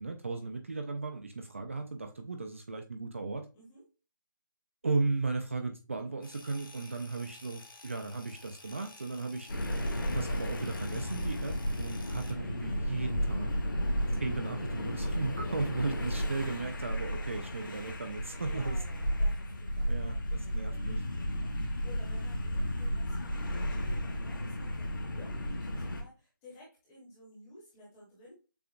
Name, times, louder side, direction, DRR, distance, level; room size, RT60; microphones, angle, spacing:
voice 1, 0.0-3.5 4.8-9.5 10.1-13.5 14.1-18.8 19.9-21.0, right 3 dB, 40° right, 0.6 m, -36 dB
sound 1, 6.2-12.3, left 3 dB, 90° left, 1.3 m, -53 dB
sound 2, 9.5-26.0, equal, 70° left, 1.5 m, -33 dB
voice 2, 15.4-16.0 18.4-28.3, equal, 5° left, 1.0 m, -54 dB
6.8 x 2.4 x 2.5 m
hypercardioid pair, 180°, 11 cm